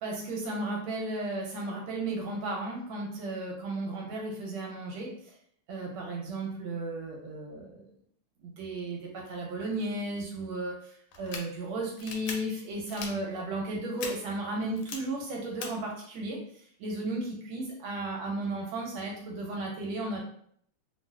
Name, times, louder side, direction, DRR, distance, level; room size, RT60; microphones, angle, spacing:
voice 1, 0.0-5.4 5.7-7.9 8.4-20.2, right 2 dB, 75° right, -1 dB, 1.3 m, -34 dB
sound 1, 11.1-11.4 12.0-12.3 12.9-13.1 14.0-14.1 14.8-15.0 15.6-15.7, left 5 dB, 80° left, 1.5 m, -38 dB
3.4 x 2.3 x 2.2 m, 0.65 s
omnidirectional pair, 2.4 m